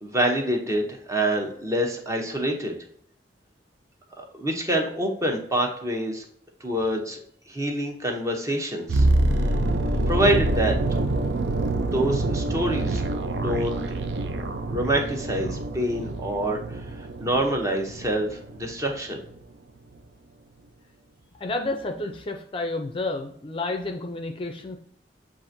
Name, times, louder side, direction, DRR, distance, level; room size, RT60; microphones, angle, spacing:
voice 1, 0.0-2.8 4.2-6.3 6.6-9.1 9.5-9.6 10.1-10.8 11.7-13.0 13.3-13.8 14.7-19.2, right 1 dB, 20° right, 1 dB, 0.7 m, -26 dB
sound 1, 8.9-18.9 19.1-19.4, right 2 dB, 75° right, 0.4 m, -26 dB
voice 2, 21.4-24.8, left 2 dB, 30° left, 4 dB, 0.4 m, -30 dB
7.2 x 2.5 x 2.6 m, 0.64 s
head